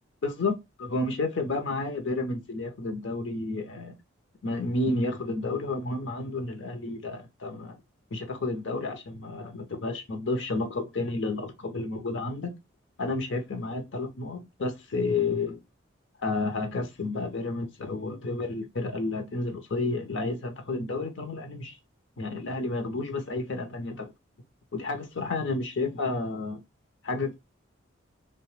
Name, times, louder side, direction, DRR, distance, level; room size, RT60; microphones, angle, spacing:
voice 1, 0.2-0.5 0.8-4.0 4.4-7.8 8.1-12.5 13.0-15.6 16.2-21.8 22.2-24.1 24.7-26.6 27.0-27.4, left 3 dB, 70° left, 0.7 m, -31 dB
2.8 x 2.2 x 3.2 m
head